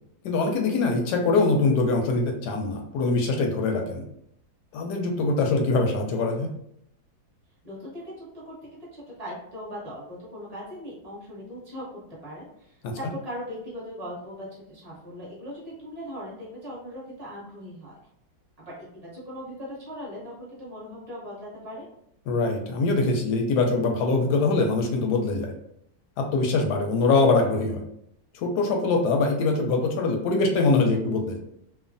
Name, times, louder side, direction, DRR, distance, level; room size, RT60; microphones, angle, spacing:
voice 1, 0.2-4.0 4.7-6.5 12.8-13.0 22.3-25.5 26.2-27.8 28.3-31.4, left 3 dB, 75° left, 3 dB, 1.0 m, -23 dB
voice 2, 7.6-8.6 8.9-17.9 18.6-18.7 19.0-21.9, equal, 30° right, -6 dB, 0.8 m, -39 dB
3.1 x 2.1 x 2.5 m, 0.75 s
omnidirectional pair, 2.0 m